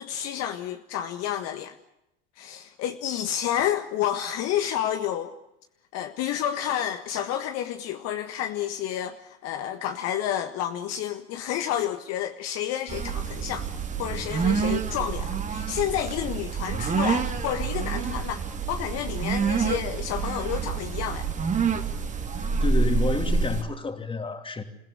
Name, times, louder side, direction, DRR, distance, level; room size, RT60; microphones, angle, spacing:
voice 1, 0.0-1.8 2.4-5.3 5.9-13.7 14.0-18.4 18.7-21.3, left 10 dB, 45° left, 1.6 m, -30 dB
sound 1, 12.9-23.6, right 5 dB, 20° right, 2.4 m, -27 dB
voice 2, 22.6-24.6, left 4 dB, 15° left, 2.9 m, -29 dB
28.0 x 17.0 x 8.3 m
hypercardioid pair, 90°, 36 cm